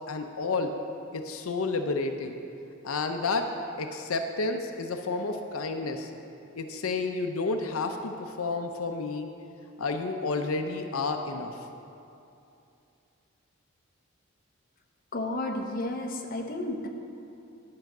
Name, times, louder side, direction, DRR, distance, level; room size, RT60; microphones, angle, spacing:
voice 1, 0.1-0.7 1.1-2.4 2.8-3.5 3.8-6.1 6.5-9.3 9.8-11.5, left 3 dB, 90° left, 6 dB, 0.6 m, -30 dB
voice 2, 15.1-16.9, left 1 dB, 45° left, 2 dB, 0.8 m, -32 dB
10.5 x 5.6 x 6.0 m, 2.7 s
head